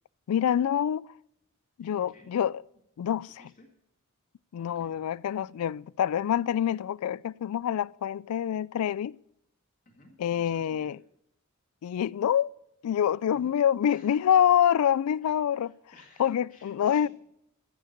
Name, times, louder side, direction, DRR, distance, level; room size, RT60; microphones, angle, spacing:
voice 1, 0.3-1.1 1.8-2.6 3.0-3.3 4.5-9.2 10.2-11.0 11.8-12.5 12.8-15.7 16.2-17.1, left 9 dB, 90° left, 0.3 m, -26 dB
voice 2, 1.8-2.3 3.2-3.7 4.6-5.0 9.9-11.0 13.2-14.4 15.2-17.1, left 1 dB, 40° left, 2.1 m, -56 dB
15.0 x 6.4 x 6.6 m
head